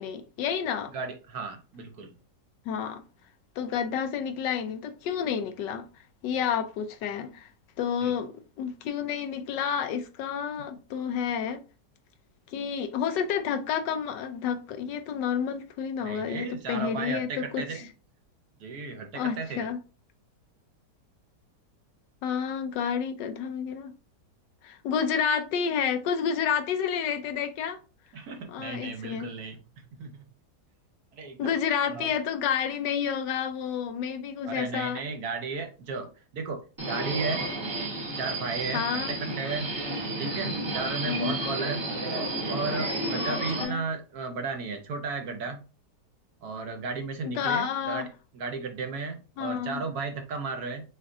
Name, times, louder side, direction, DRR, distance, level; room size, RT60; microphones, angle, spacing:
voice 1, 0.0-0.9 2.7-3.0 3.6-5.9 6.2-7.5 7.8-11.6 12.5-17.6 19.1-19.8 22.2-23.9 24.6-27.8 28.5-29.3 31.4-35.0 38.7-39.1 41.1-41.4 43.3-43.9 47.2-48.1 49.4-49.8, left 7 dB, 80° left, 1.2 m, -30 dB
voice 2, 0.9-2.1 8.0-8.1 16.0-17.9 18.6-19.7 28.1-29.6 30.0-30.2 31.1-31.6 31.9-32.1 34.5-37.5 38.2-39.7 40.2-41.9 42.5-45.6 46.4-48.1 48.3-50.8, right 4 dB, 65° right, 1.2 m, -34 dB
Subway metro underground, 36.8-43.6, right 2 dB, 25° right, 0.7 m, -32 dB
6.4 x 2.5 x 2.5 m
omnidirectional pair, 1.9 m